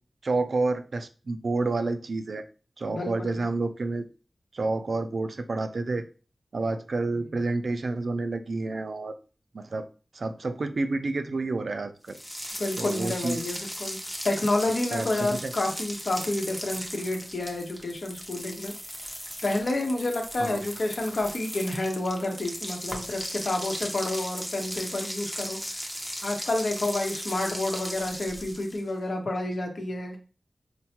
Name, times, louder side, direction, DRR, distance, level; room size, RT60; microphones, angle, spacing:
voice 1, 0.2-2.5 2.8-4.1 4.5-6.1 6.5-9.2 9.5-9.9 10.1-12.2 12.8-13.5 14.9-15.5 20.4-20.7, right 3 dB, 70° right, 8 dB, 0.4 m, -29 dB
voice 2, 2.9-3.4 12.6-14.0 14.2-18.7 19.4-25.8 26.2-30.2, left 2 dB, 70° left, 2 dB, 0.9 m, -29 dB
sound 1, 12.1-28.9, equal, 5° left, 0.7 m, -37 dB
4.5 x 2.1 x 2.9 m, 0.35 s
wide cardioid pair, 95°, 0 cm